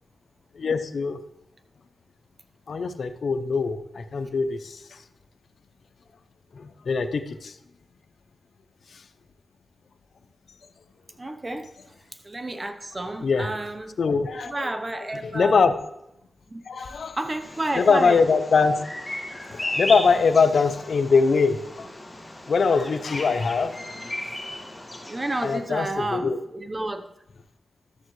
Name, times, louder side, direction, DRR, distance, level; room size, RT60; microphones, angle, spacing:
voice 1, 0.5-1.2 2.7-5.0 6.5-7.6 8.9-9.0 13.2-13.5 14.0-14.7 15.2-15.7 16.7-17.2 17.8-18.7 19.5-21.9 22.5-23.9 25.4-26.4, left 5 dB, 75° left, 10 dB, 0.6 m, -22 dB
voice 2, 11.2-13.9 14.4-15.6 16.5-16.6 17.2-18.2 25.1-27.1, right 2 dB, 30° right, 7 dB, 0.8 m, -31 dB
Bird vocalization bird call bird song, 17.4-25.6, left 1 dB, 15° left, 1.7 m, -35 dB
12.5 x 7.4 x 3.1 m, 0.85 s
cardioid pair, 70°, 0 cm